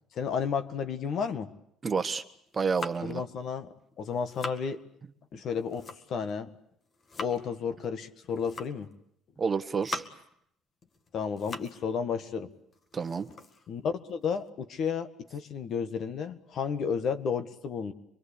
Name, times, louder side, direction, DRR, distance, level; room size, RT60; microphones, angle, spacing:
voice 1, 0.1-1.5 3.0-4.8 5.3-6.5 7.2-8.9 11.1-12.5 13.7-17.9, left 6 dB, 55° left, 10 dB, 1.7 m, -32 dB
voice 2, 1.8-2.2 2.5-3.2 9.4-10.0 12.9-13.3, right 5 dB, 25° right, 10 dB, 1.2 m, -29 dB
sound 1, 2.3-3.2 3.9-4.7 5.4-6.3 6.7-7.4 8.2-8.9 9.4-10.3 10.8-11.8 12.2-12.3 12.7-14.5, left 3 dB, 35° left, 2.1 m, -42 dB
25.5 x 22.5 x 8.5 m, 0.72 s
cardioid pair, 120°, 0 cm